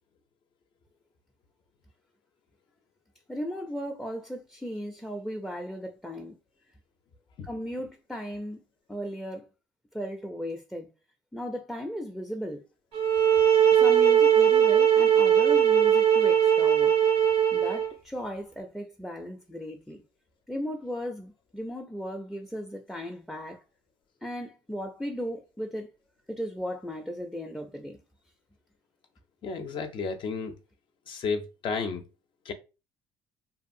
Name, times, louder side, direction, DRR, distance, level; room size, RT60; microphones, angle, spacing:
voice 1, 3.3-6.4 7.4-8.6 8.9-9.5 9.9-10.9 11.3-12.6 13.8-16.9 17.5-20.0 20.5-23.6 24.2-25.9 26.3-28.0, equal, 5° left, 0.5 m, -36 dB
sound 1, 12.9-17.9, right 9 dB, 70° right, 0.8 m, -20 dB
voice 2, 29.4-30.5 31.1-32.0 32.5-32.6, left 5 dB, 50° left, 0.5 m, -32 dB
2.7 x 2.3 x 2.6 m
supercardioid pair, 80°, 10 cm